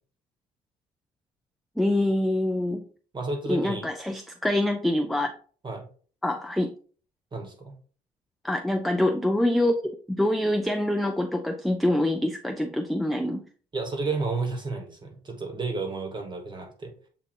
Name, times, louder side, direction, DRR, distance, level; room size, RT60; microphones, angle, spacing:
voice 1, 1.8-2.8 3.5-5.3 6.2-6.7 8.4-13.4, left 1 dB, ahead, 4 dB, 0.3 m, -25 dB
voice 2, 3.1-3.8 5.6-5.9 7.3-7.7 13.7-16.9, right 3 dB, 25° right, 4 dB, 1.2 m, -31 dB
7.5 x 2.7 x 2.6 m, 0.42 s
cardioid pair, 110°, 17 cm